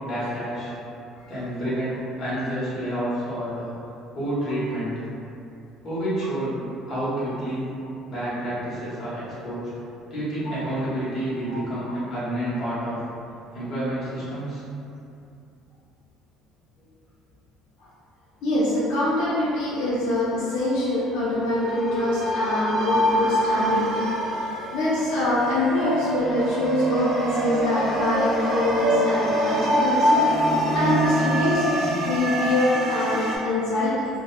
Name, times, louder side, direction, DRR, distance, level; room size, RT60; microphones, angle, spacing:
voice 1, 0.0-0.7 1.3-3.7 4.1-4.9 5.8-6.6 6.9-7.6 8.1-9.7 10.1-13.0 13.5-14.6 16.8-16.9 24.4-24.6, right 1 dB, 40° left, -11 dB, 1.0 m, -29 dB
voice 2, 18.4-30.2 30.7-34.1, left 1 dB, 90° left, -8 dB, 0.5 m, -24 dB
sound 1, 21.0-33.4, equal, 45° right, 0.5 m, -25 dB
2.7 x 2.2 x 2.2 m, 2.6 s
cardioid pair, 155°, 0 cm